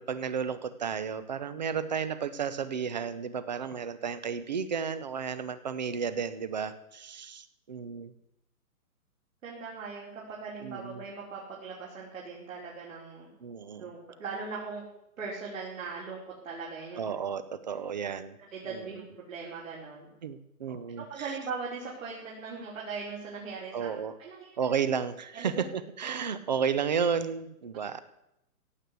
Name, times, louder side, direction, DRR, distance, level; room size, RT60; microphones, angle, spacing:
voice 1, 0.0-8.1 10.6-11.0 13.4-13.9 17.0-18.4 18.7-18.9 20.2-21.3 23.7-24.1 24.6-28.0, right 6 dB, 30° right, 14 dB, 0.8 m, -32 dB
voice 2, 9.4-13.3 13.8-14.8 15.2-16.2 16.4-17.1 18.5-20.1 20.7-20.8 21.1-23.9 24.2-24.5 25.3-25.6, right 4 dB, 55° right, -4 dB, 4.7 m, -39 dB
16.5 x 7.9 x 8.4 m, 0.84 s
hypercardioid pair, 170°, 45 cm